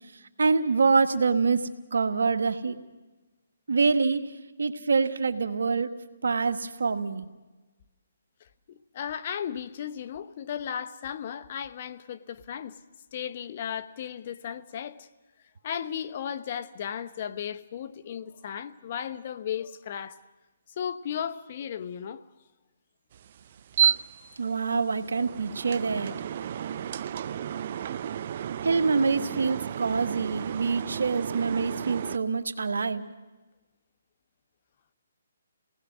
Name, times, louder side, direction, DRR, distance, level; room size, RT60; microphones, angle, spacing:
voice 1, 0.4-2.7 3.7-4.2 4.6-5.9 6.2-7.3 24.4-26.1 28.6-33.0, right 4 dB, 80° right, 1.7 m, -25 dB
voice 2, 8.7-12.8 13.1-15.1 15.6-20.2 20.8-22.2, left 8 dB, 40° left, 1.0 m, -35 dB
sound 1, 23.1-32.2, right 9 dB, 45° right, 0.7 m, -32 dB
28.5 x 19.0 x 6.2 m
hypercardioid pair, 155°, 0 cm